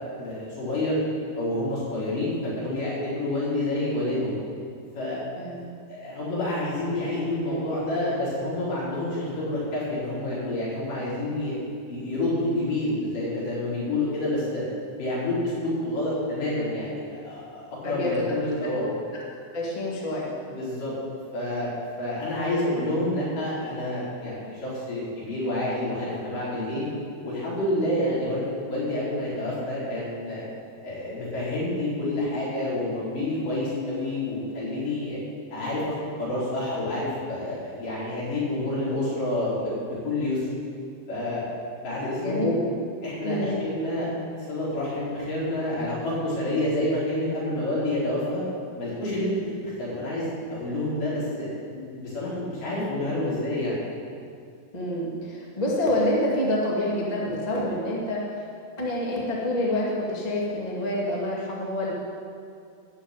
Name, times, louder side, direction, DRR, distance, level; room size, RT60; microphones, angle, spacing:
voice 1, 0.2-1.0 1.4-4.4 4.9-5.2 5.9-11.5 11.9-14.7 15.0-18.9 20.5-20.9 21.3-21.7 22.0-26.9 27.2-30.4 30.8-35.2 35.5-40.4 41.1-41.5 41.8-42.5 43.0-44.1 44.5-48.4 48.8-53.8, left 1 dB, 60° left, -9 dB, 5.8 m, -28 dB
voice 2, 17.8-18.3 18.8-18.9 19.5-20.3 42.2-42.5 43.2-43.6 54.7-58.2 58.8-61.9, left 1 dB, 20° left, -4 dB, 1.2 m, -27 dB
13.5 x 6.7 x 9.0 m, 2.3 s
omnidirectional pair, 4.3 m